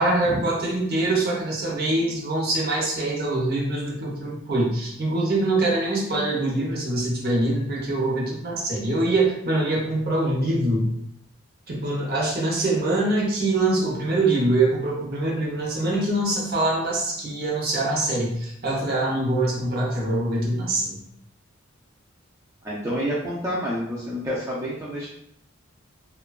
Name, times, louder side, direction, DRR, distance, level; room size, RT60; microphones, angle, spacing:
voice 1, 0.0-10.8 11.7-21.0, right 2 dB, 50° right, -3 dB, 0.7 m, -24 dB
voice 2, 22.6-25.1, equal, 15° right, -6 dB, 0.3 m, -28 dB
2.8 x 2.2 x 2.3 m, 0.72 s
head